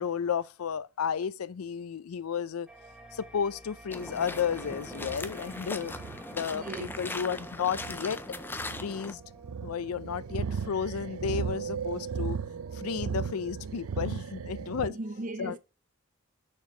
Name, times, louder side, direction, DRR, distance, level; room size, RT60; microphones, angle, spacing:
voice 1, 0.0-2.7 3.1-5.9 6.3-6.6 7.0-8.2 8.8-9.2 9.6-12.4 12.7-14.9 15.4-15.5, left 7 dB, 90° left, 0.4 m, -32 dB
sound 1, 2.7-11.7, right 2 dB, 5° right, 1.0 m, -51 dB
sound 2, 3.9-9.1, left 2 dB, 10° left, 0.4 m, -40 dB
sound 3, 4.5-14.9, right 6 dB, 80° right, 0.5 m, -37 dB
voice 2, 6.3-7.3 13.8-13.9 14.8-15.6, right 2 dB, 40° right, 0.7 m, -39 dB
6.5 x 4.8 x 4.3 m
head